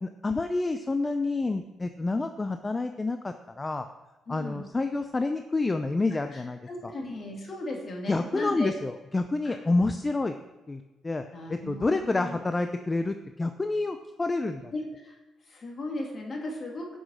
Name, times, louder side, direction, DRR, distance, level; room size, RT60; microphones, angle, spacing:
voice 1, 0.0-3.9 4.3-6.9 8.1-10.4 10.7-11.2 11.5-14.7, left 3 dB, 20° left, 8 dB, 0.6 m, -28 dB
voice 2, 4.3-4.6 6.3-8.7 9.4-9.6 11.3-12.4 14.7-15.2 15.4-17.0, left 2 dB, 45° left, 0 dB, 2.6 m, -36 dB
10.5 x 6.3 x 6.4 m, 1.1 s
cardioid pair, 90°, 0 cm